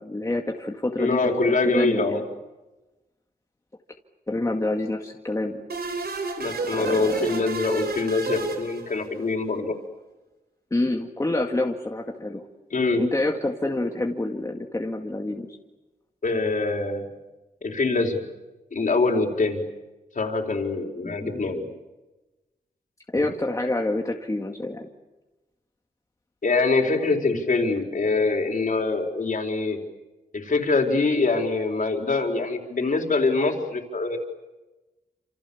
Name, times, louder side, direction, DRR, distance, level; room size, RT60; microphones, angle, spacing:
voice 1, 0.0-1.2 1.6-2.2 4.3-5.6 6.7-7.4 10.7-12.4 13.0-15.6 21.0-21.3 23.1-24.9, left 2 dB, 20° left, 1 dB, 2.0 m, -27 dB
voice 2, 1.0-2.3 6.4-9.7 12.7-13.1 16.2-17.0 17.6-18.2 18.7-19.6 20.1-21.7 26.4-29.8 30.3-34.2, left 3 dB, 55° left, 3 dB, 4.4 m, -24 dB
sound 1, 5.7-9.3, right 4 dB, 80° right, 3.9 m, -31 dB
29.0 x 27.5 x 7.2 m, 1.1 s
wide cardioid pair, 145°, 16 cm